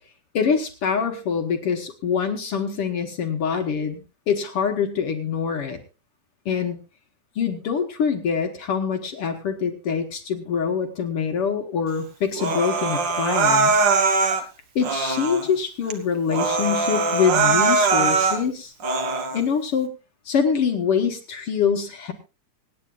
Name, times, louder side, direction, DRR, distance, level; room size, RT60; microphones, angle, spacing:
voice 1, 0.3-5.8 6.5-6.8 7.4-13.8 14.8-18.7 19.3-19.9 20.3-22.1, left 6 dB, 55° left, 5 dB, 1.9 m, -24 dB
Human voice, 12.4-14.4 14.8-15.5 15.9-16.0 16.3-18.4 18.8-19.4, right 4 dB, 50° right, 1.6 m, -21 dB
25.5 x 9.7 x 2.4 m, 0.30 s
omnidirectional pair, 3.5 m